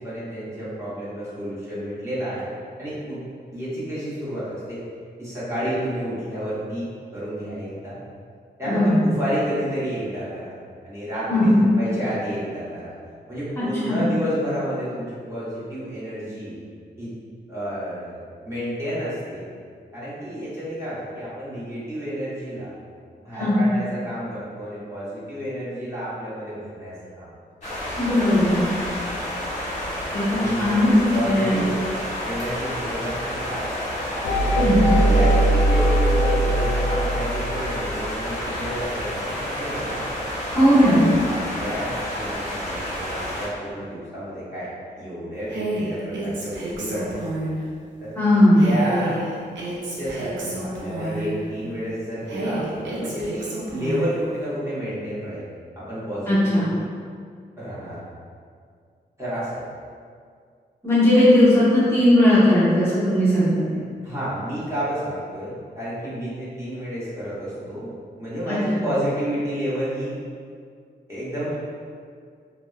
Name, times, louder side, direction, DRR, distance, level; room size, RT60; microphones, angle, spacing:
voice 1, 0.0-2.5 2.8-3.2 3.5-4.8 5.2-8.0 8.6-10.5 10.8-12.9 13.3-16.6 17.0-17.1 17.5-18.2 18.4-19.5 19.9-22.7 23.2-27.3 30.3-30.8 31.1-31.8 32.2-33.9 34.4-40.0 40.5-44.7 45.0-47.2 48.0-48.1 48.6-49.2 49.9-55.4 55.8-56.6 57.6-58.0 59.2-59.6 64.0-67.9 68.2-70.2 71.1-71.6, equal, 15° right, -12 dB, 1.1 m, -30 dB
voice 2, 8.6-9.1 11.3-11.7 13.6-14.1 23.4-23.6 28.0-28.6 30.1-31.6 34.6-34.8 40.5-41.1 48.1-48.7 56.3-56.7 60.8-63.8 68.5-68.8, left 1 dB, 15° left, -12 dB, 1.0 m, -18 dB
sound 1, 27.6-43.5, equal, 40° left, 1.0 m, -30 dB
sound 2, 34.2-38.0, right 1 dB, 80° left, 0.4 m, -20 dB
Female speech woman speaking, 45.5-47.6 48.6-51.5 52.3-54.2, right 1 dB, 80° right, 0.5 m, -30 dB
2.6 x 2.1 x 2.3 m, 2.1 s
cardioid pair, 50°, 19 cm